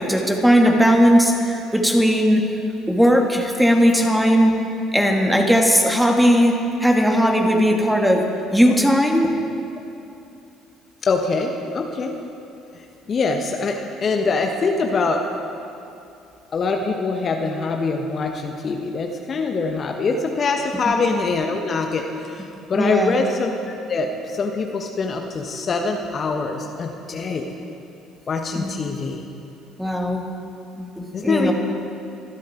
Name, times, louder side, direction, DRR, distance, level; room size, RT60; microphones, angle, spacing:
voice 1, 0.0-2.4 2.9-4.6 4.9-6.5 6.8-8.2 8.5-9.3 22.7-23.1 28.5-28.7 29.8-30.2 30.8-31.5, equal, ahead, 2 dB, 2.4 m, -17 dB
voice 2, 11.0-12.1 12.7-15.2 16.5-27.5 28.3-29.3 31.1-31.5, left 4 dB, 40° left, 3 dB, 1.5 m, -24 dB
25.0 x 12.5 x 4.6 m, 2.7 s
figure-of-eight pair, 55°, 0 cm